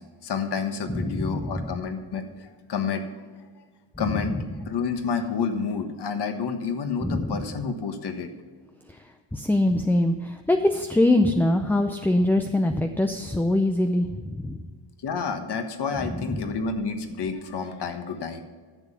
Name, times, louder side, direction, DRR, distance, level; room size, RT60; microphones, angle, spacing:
voice 1, 0.0-3.3 4.0-8.3 15.0-18.4, left 5 dB, 55° left, 7 dB, 1.4 m, -29 dB
voice 2, 0.9-1.7 4.0-4.1 4.3-4.4 7.0-7.4 9.3-14.6 16.2-16.4, left 1 dB, 5° left, 5 dB, 0.4 m, -23 dB
10.5 x 7.2 x 5.7 m, 1.5 s
cardioid pair, 115°, 49 cm